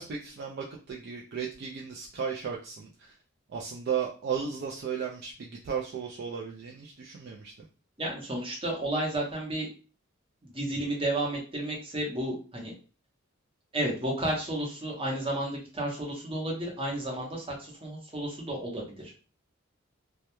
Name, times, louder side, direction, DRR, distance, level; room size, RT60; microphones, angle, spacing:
voice 1, 0.0-3.1 3.5-7.5, right 7 dB, 50° right, -1 dB, 0.3 m, -35 dB
voice 2, 8.0-9.7 10.5-12.7 13.7-19.1, right 1 dB, 25° right, -1 dB, 0.7 m, -32 dB
2.2 x 2.1 x 2.9 m, 0.36 s
head